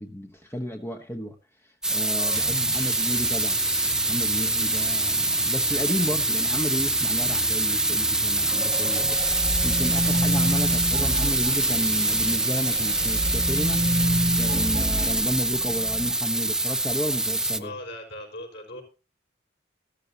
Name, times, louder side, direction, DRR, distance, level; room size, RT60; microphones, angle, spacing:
voice 1, 0.0-1.4 1.6-9.2 9.6-13.8 14.4-17.7, equal, 15° left, 5 dB, 1.0 m, -32 dB
sound 1, 1.8-17.6, right 2 dB, 5° right, 0.6 m, -25 dB
sound 2, 2.3-15.4, right 5 dB, 75° right, 1.6 m, -38 dB
sound 3, 8.5-12.4 12.7-16.1, right 1 dB, 25° right, 1.0 m, -29 dB
voice 2, 17.5-18.8, left 1 dB, 60° left, 3 dB, 5.2 m, -39 dB
14.0 x 13.5 x 2.8 m, 0.32 s
head